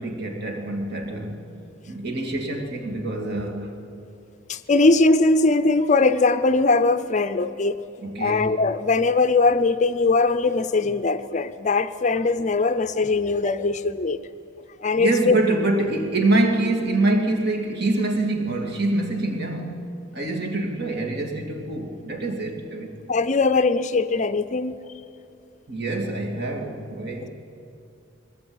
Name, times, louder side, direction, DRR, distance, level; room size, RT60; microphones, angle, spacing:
voice 1, 0.0-1.5 1.9-3.9 8.0-8.6 15.0-23.0 25.7-27.3, right 2 dB, 55° right, 2.7 m, -25 dB
voice 2, 4.5-7.8 8.2-14.2 14.8-15.4 23.1-24.8, left 3 dB, 35° left, 0.6 m, -20 dB
21.0 x 17.0 x 8.9 m
head